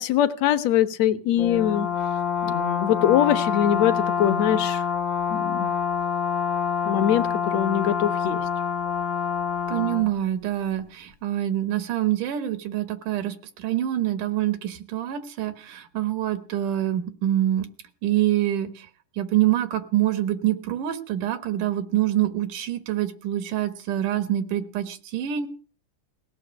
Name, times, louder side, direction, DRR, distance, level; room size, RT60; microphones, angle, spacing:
voice 1, 0.0-1.9 2.4-4.8 5.3-5.7 6.8-8.4, left 10 dB, 65° left, 10 dB, 2.1 m, -22 dB
Brass instrument, 1.4-10.1, left 7 dB, 80° left, 1.0 m, -26 dB
voice 2, 9.7-17.7 18.0-18.9 19.2-25.5, right 12 dB, 85° right, 12 dB, 3.0 m, -25 dB
17.5 x 7.1 x 9.9 m, 0.39 s
omnidirectional pair, 3.5 m